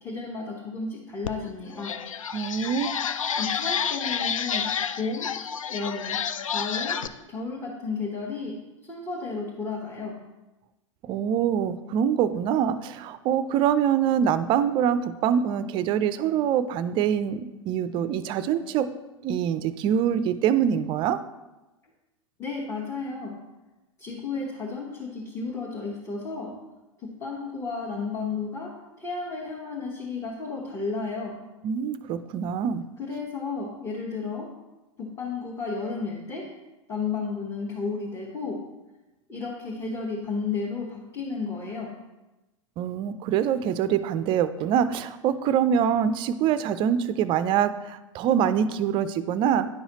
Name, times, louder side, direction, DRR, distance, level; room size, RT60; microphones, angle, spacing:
voice 1, 0.0-2.0 3.4-4.7 5.0-5.3 5.7-6.2 6.4-7.0 7.3-8.6 8.9-10.2 22.4-23.4 24.0-26.5 27.0-31.4 33.0-34.5 35.0-36.5 36.9-38.6 39.3-41.9, left 4 dB, 15° left, -3 dB, 1.1 m, -33 dB
sound 1, 1.2-1.3 1.7-7.1, left 7 dB, 80° left, 0.4 m, -29 dB
voice 2, 2.3-2.9 11.0-18.9 19.2-21.2 31.6-32.8 42.8-49.7, right 8 dB, 30° right, 13 dB, 0.4 m, -24 dB
10.0 x 5.5 x 2.9 m, 1.0 s
figure-of-eight pair, 100°, 17 cm